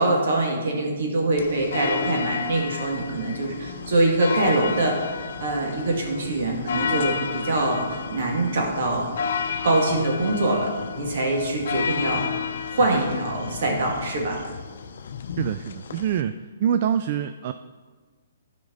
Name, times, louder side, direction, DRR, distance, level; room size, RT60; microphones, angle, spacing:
voice 1, 0.0-5.1 5.4-9.1 9.6-12.2 12.7-14.4, right 2 dB, 65° right, -1 dB, 2.2 m, -24 dB
sound 1, 1.4-16.2, left 6 dB, 65° left, 0.6 m, -32 dB
voice 2, 15.4-16.3 16.6-17.5, right 9 dB, 45° right, 10 dB, 0.3 m, -25 dB
12.0 x 5.2 x 4.0 m, 1.5 s
hypercardioid pair, 145°, 0 cm